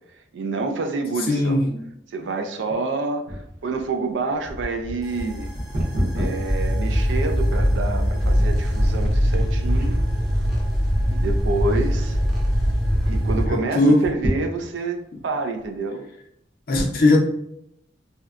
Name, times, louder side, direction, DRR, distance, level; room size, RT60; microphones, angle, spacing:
voice 1, 0.3-1.6 2.1-5.5 6.2-10.0 11.1-12.2 13.1-16.1, right 3 dB, 80° right, 0.4 m, -28 dB
voice 2, 1.3-1.8 13.5-14.0 16.7-17.2, left 1 dB, 55° left, 0.5 m, -18 dB
sound 1, 3.3-7.7 8.3-8.4 9.1-9.4 9.7-10.3 10.9-11.6 11.9-12.0 12.3-12.4 13.9-15.0 15.6-15.7, equal, 55° right, 0.8 m, -30 dB
sound 2, 5.0-13.5, equal, ahead, 0.5 m, -22 dB
2.7 x 2.1 x 2.4 m
head